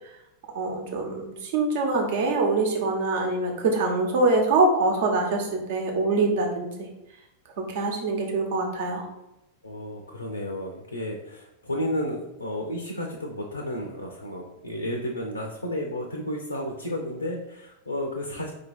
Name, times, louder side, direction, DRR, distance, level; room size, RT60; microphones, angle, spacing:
voice 1, 0.5-6.7 7.6-9.1, right 3 dB, 55° right, 1 dB, 1.0 m, -24 dB
voice 2, 9.6-18.5, left 1 dB, 85° left, 2 dB, 0.6 m, -32 dB
4.6 x 2.8 x 4.2 m, 0.89 s
figure-of-eight pair, 90°, 0 cm